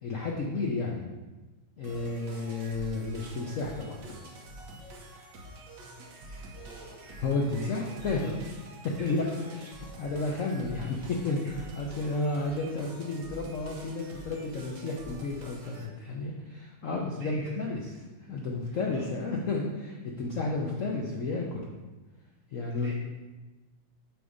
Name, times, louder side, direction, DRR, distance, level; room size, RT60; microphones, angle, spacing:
voice 1, 0.0-1.1 1.8-4.1 7.2-8.4 8.8-9.3 10.0-17.8 18.3-21.7 22.5-22.9, left 3 dB, 80° left, -1 dB, 0.7 m, -32 dB
sound 1, 1.8-15.8, right 1 dB, 65° right, 1.4 m, -46 dB
voice 2, 6.2-9.8 17.1-17.5 18.2-18.3 18.6-19.1 22.6-22.9, right 1 dB, 35° right, -5 dB, 1.8 m, -50 dB
7.6 x 2.7 x 5.0 m, 1.2 s
omnidirectional pair, 2.2 m